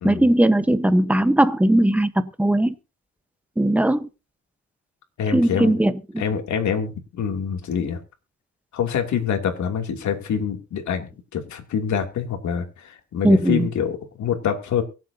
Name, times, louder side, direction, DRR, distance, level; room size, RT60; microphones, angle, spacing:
voice 1, 0.0-2.7 3.6-4.1 5.3-6.2 13.2-13.7, right 1 dB, 5° right, 1.2 m, -19 dB
voice 2, 5.2-5.7 6.2-8.0 8.7-14.8, left 7 dB, 70° left, 2.9 m, -26 dB
23.5 x 7.9 x 2.8 m
cardioid pair, 90°, 30 cm